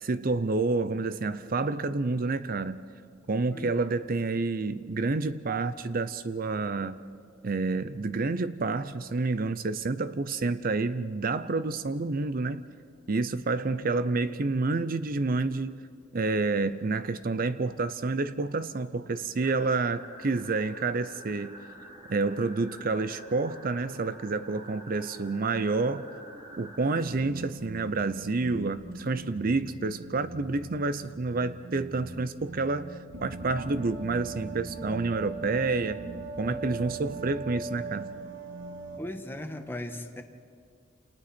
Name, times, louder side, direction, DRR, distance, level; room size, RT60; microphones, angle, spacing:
voice 1, 0.0-2.9 3.3-7.0 7.4-12.7 13.1-15.9 16.1-21.6 22.1-26.2 26.6-36.0 36.4-38.1, right 3 dB, 50° right, 13 dB, 0.6 m, -29 dB
sound 1, 19.4-27.1, equal, 25° right, 2.7 m, -47 dB
sound 2, 26.9-39.0, right 3 dB, 80° right, 2.7 m, -40 dB
voice 2, 39.0-40.2, left 1 dB, 10° left, 5 dB, 1.4 m, -38 dB
30.0 x 28.5 x 4.4 m, 2.1 s
head